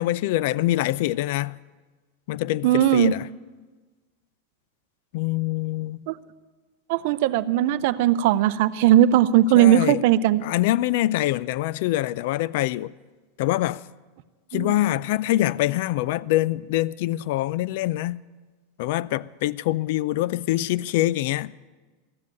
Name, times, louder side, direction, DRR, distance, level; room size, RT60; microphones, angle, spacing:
voice 1, 0.0-1.6 2.3-3.3 5.1-6.0 9.5-10.0 10.4-12.9 13.4-13.8 14.5-18.2 18.8-21.5, left 15 dB, 60° left, 0.3 m, -24 dB
voice 2, 2.6-3.1 6.1-6.2 6.9-10.4 14.5-14.7, right 12 dB, 60° right, 0.5 m, -18 dB
14.0 x 7.5 x 9.3 m
supercardioid pair, 155°, 0 cm